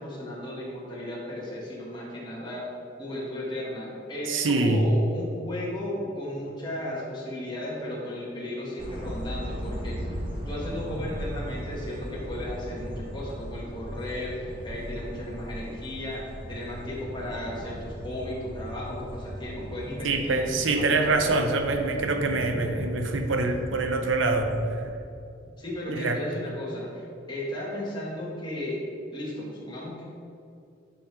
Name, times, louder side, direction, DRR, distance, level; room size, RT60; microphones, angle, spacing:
voice 1, 0.0-2.7 3.0-10.2 10.5-21.4 25.6-28.8 29.1-30.0, left 1 dB, 25° left, -5 dB, 1.7 m, -35 dB
voice 2, 4.3-4.9 20.0-24.8 25.9-26.2, right 3 dB, 90° right, 6 dB, 0.7 m, -25 dB
sound 1, 8.8-24.9, equal, 25° right, 1.3 m, -37 dB
10.0 x 5.2 x 3.3 m, 2.6 s
head